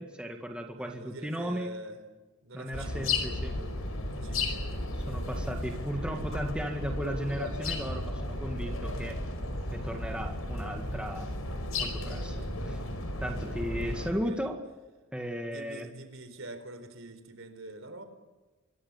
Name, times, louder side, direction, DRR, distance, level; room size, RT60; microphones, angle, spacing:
voice 1, 0.0-1.7 2.5-3.9 5.1-9.2 9.7-11.3 11.8-12.8 13.2-14.6 15.1-15.9, equal, 5° right, 2 dB, 2.0 m, -36 dB
voice 2, 0.8-2.0 2.4-3.8 4.1-4.9 14.1-14.5 15.4-18.0, right 1 dB, 70° right, 9 dB, 4.1 m, -45 dB
sound 1, 2.7-14.1, left 2 dB, 90° left, 5.2 m, -34 dB
26.5 x 22.0 x 7.4 m, 1.2 s
head